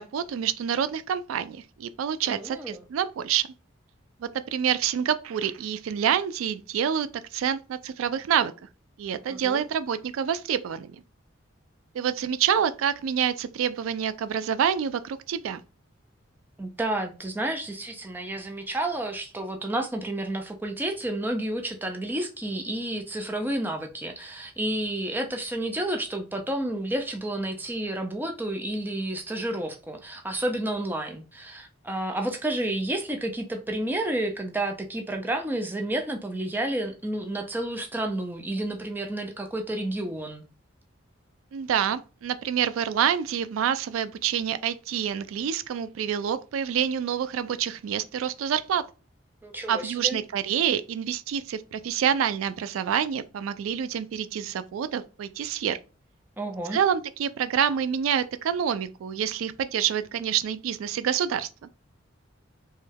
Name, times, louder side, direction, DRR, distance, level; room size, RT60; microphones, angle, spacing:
voice 1, 0.0-3.5 4.2-8.5 9.0-10.9 11.9-15.6 41.5-48.9 49.7-55.8 56.7-61.5, right 8 dB, 90° right, 0.3 m, -27 dB
voice 2, 2.3-2.8 9.3-9.7 16.6-40.4 49.4-50.2 56.4-56.8, right 1 dB, 10° right, 0.4 m, -30 dB
3.1 x 2.2 x 3.2 m
head